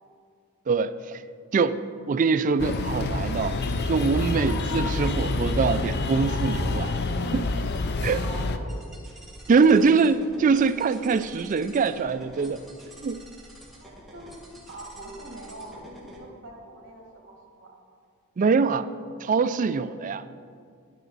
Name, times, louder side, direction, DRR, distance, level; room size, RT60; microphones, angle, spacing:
voice 1, 0.7-1.2 1.5-1.8 2.1-3.6 3.8-6.9 7.3-7.5 8.0-8.2 9.5-12.6 13.0-13.2 18.4-18.9 19.2-20.2, right 5 dB, 35° right, 12 dB, 0.3 m, -23 dB
sound 1, 2.6-8.6, left 2 dB, 50° left, 0.5 m, -27 dB
voice 2, 8.1-8.7 9.6-9.9 13.8-14.4 14.6-17.8, right 1 dB, 55° right, 0 dB, 2.0 m, -43 dB
sound 2, 8.7-16.2, right 1 dB, ahead, 1.5 m, -48 dB
10.0 x 9.2 x 4.0 m, 2.2 s
head